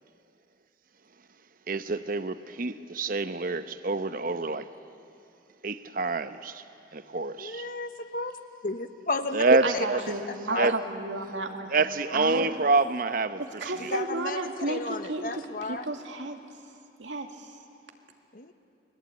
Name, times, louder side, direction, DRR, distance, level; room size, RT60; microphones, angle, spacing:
voice 1, 1.7-4.7 5.6-6.6 6.9-7.7 9.3-10.0 10.6-10.7 11.7-13.9, right 3 dB, 50° right, 0.9 m, -27 dB
voice 2, 7.4-8.4 8.6-9.4 10.5-10.7 13.9-14.4 14.7-15.8 18.3-18.5, left 3 dB, 50° left, 1.3 m, -33 dB
voice 3, 9.6-11.7 12.1-12.5 13.4-16.4 17.0-17.5, right 2 dB, 90° right, 2.3 m, -33 dB
29.5 x 21.5 x 9.1 m
head